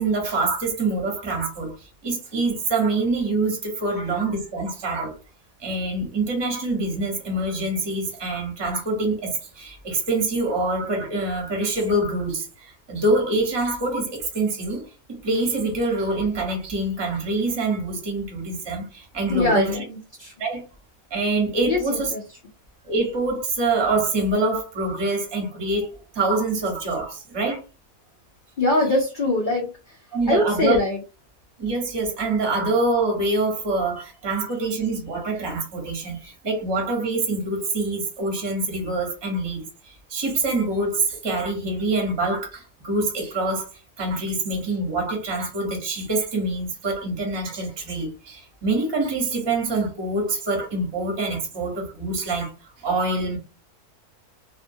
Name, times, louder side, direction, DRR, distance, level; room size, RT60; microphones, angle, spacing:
voice 1, 0.0-5.2 5.6-19.8 20.4-20.6 21.1-22.1 22.8-27.6 30.1-30.8 31.6-43.6 44.0-52.5 52.8-53.4, right 2 dB, 25° right, 0.6 m, -25 dB
voice 2, 19.3-20.3 21.7-22.2 28.6-30.0 30.3-31.0, left 2 dB, 75° left, 0.4 m, -23 dB
2.5 x 2.4 x 2.6 m
omnidirectional pair, 1.6 m